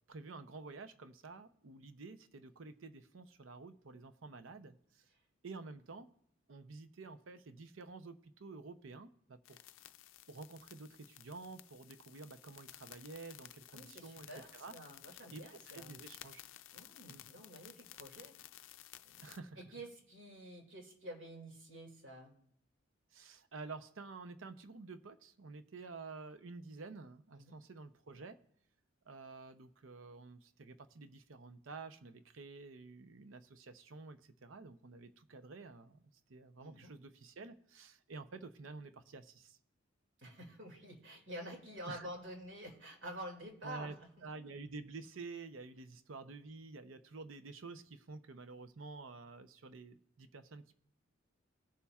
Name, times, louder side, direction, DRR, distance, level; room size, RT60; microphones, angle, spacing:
voice 1, 0.1-5.1 5.4-6.1 6.5-9.6 10.3-14.7 15.3-16.4 17.1-17.2 19.2-19.6 23.1-28.4 29.1-39.6 41.9-42.1 43.6-50.7, right 3 dB, 90° right, 10 dB, 0.7 m, -50 dB
sound 1, 9.5-19.4, left 13 dB, 85° left, 0.4 m, -56 dB
voice 2, 13.7-16.0 16.7-18.3 19.0-19.2 19.6-22.3 27.3-27.6 36.6-36.9 40.2-44.1, right 1 dB, 70° right, 1 dB, 2.3 m, -49 dB
20.5 x 6.9 x 2.4 m, 0.72 s
head